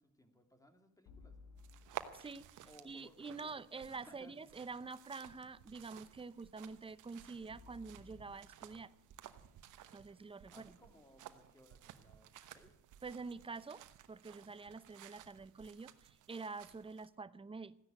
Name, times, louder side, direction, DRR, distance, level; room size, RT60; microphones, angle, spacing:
voice 1, 0.0-1.4 2.6-3.5 3.9-4.3 10.5-12.8, equal, 10° left, 2.5 m, -63 dB
sound 1, 1.1-3.2 7.5-10.7, left 4 dB, 85° left, 1.8 m, -61 dB
sound 2, 1.6-17.1, right 11 dB, 80° right, 1.1 m, -55 dB
voice 2, 2.1-2.5 2.8-8.9 9.9-10.7 13.0-13.8 14.1-17.8, right 4 dB, 20° right, 0.7 m, -47 dB
14.5 x 10.5 x 9.0 m
cardioid pair, 90°, 30 cm